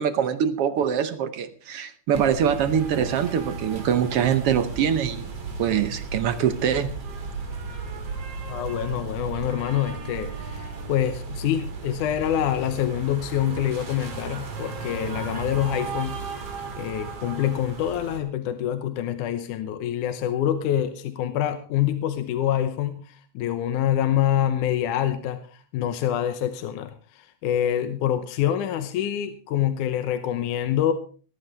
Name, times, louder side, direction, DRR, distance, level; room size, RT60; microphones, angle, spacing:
voice 1, 0.0-5.3 5.6-6.9, right 8 dB, 70° right, 11 dB, 1.4 m, -24 dB
sound 1, 2.1-18.2, right 4 dB, 50° right, 3.4 m, -35 dB
voice 2, 8.5-16.4 16.8-30.9, left 10 dB, 80° left, 9 dB, 2.4 m, -26 dB
19.0 x 14.5 x 3.4 m, 0.40 s
omnidirectional pair, 3.7 m